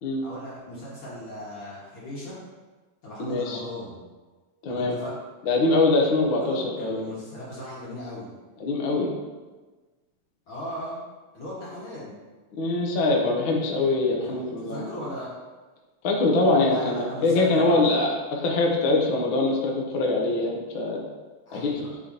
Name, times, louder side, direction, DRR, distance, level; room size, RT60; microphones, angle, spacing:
voice 1, 0.2-2.4 3.0-4.0 4.7-5.1 6.4-8.3 10.5-11.0 11.3-12.1 14.3-15.3 16.6-17.8 21.5-21.9, left 1 dB, 45° left, -8 dB, 2.0 m, -37 dB
voice 2, 3.2-3.6 4.6-4.9 5.4-7.0 8.6-9.1 12.5-14.9 16.0-21.0 21.5-21.7, left 2 dB, 90° left, -1 dB, 1.1 m, -23 dB
10.5 x 5.0 x 2.9 m, 1.3 s
omnidirectional pair, 3.9 m